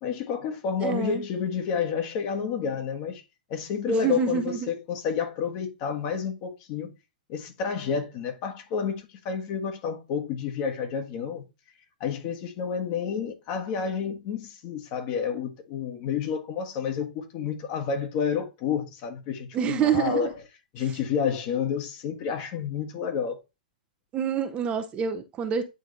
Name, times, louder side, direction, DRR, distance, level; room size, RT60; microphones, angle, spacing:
voice 1, 0.0-3.2 3.5-6.9 7.3-11.4 12.0-20.3 20.7-23.4, left 6 dB, 40° left, 1.5 m, -30 dB
voice 2, 0.8-1.2 3.9-4.7 19.5-20.3 24.1-25.7, right 7 dB, 25° right, 0.7 m, -27 dB
9.2 x 3.8 x 3.2 m
figure-of-eight pair, 110°, 5 cm